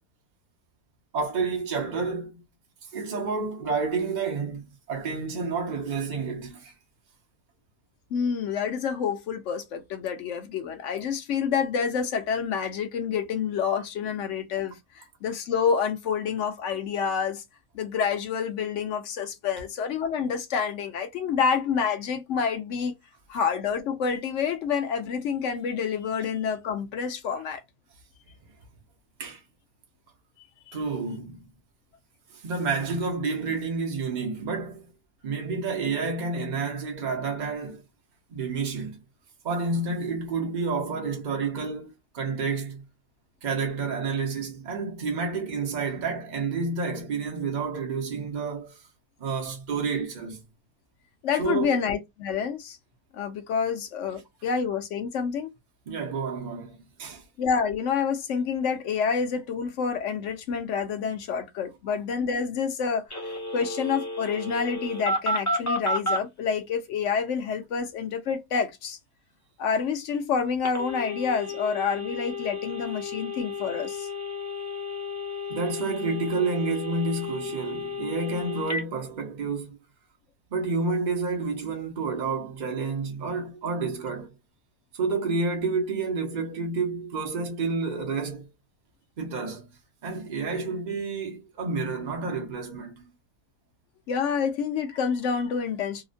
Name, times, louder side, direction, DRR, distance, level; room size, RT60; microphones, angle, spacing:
voice 1, 1.1-2.4 2.8-6.7 29.2-29.4 30.7-31.4 32.3-34.9 35.2-37.8 38.3-39.0 39.4-42.8 43.4-48.8 49.2-50.4 51.4-51.8 55.9-57.2 75.5-79.8 80.5-84.3 84.9-88.5 89.2-89.7 90.0-93.0, right 4 dB, 50° right, 0.5 m, -29 dB
voice 2, 8.1-17.4 17.7-22.9 23.3-27.6 30.7-30.8 51.2-52.8 53.1-55.5 57.4-69.0 69.6-74.1 94.1-96.0, left 6 dB, 65° left, 0.8 m, -28 dB
Telephone, 63.1-66.2 70.6-78.8, left 2 dB, 25° left, 0.4 m, -32 dB
2.8 x 2.1 x 2.5 m
omnidirectional pair, 1.6 m